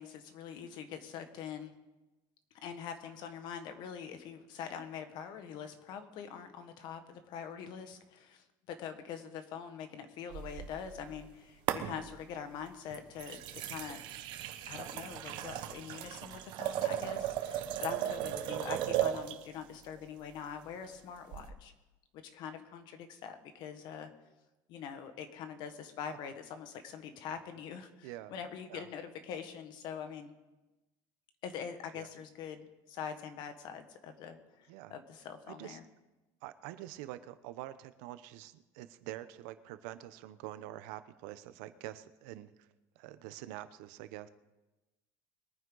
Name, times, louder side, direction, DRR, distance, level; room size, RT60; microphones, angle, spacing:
voice 1, 0.0-1.7 2.6-14.0 14.7-21.7 22.2-24.1 24.7-30.3 31.4-35.8, left 7 dB, 55° left, 8 dB, 1.5 m, -44 dB
sound 1, 10.3-11.3 11.7-12.3 12.9-19.4 21.3-21.5, right 12 dB, 60° right, 1.1 m, -36 dB
voice 2, 35.5-35.8 36.4-42.7 43.0-44.3, right 14 dB, 80° right, 12 dB, 0.8 m, -46 dB
22.5 x 9.5 x 4.0 m, 1.1 s
cardioid pair, 150°, 9 cm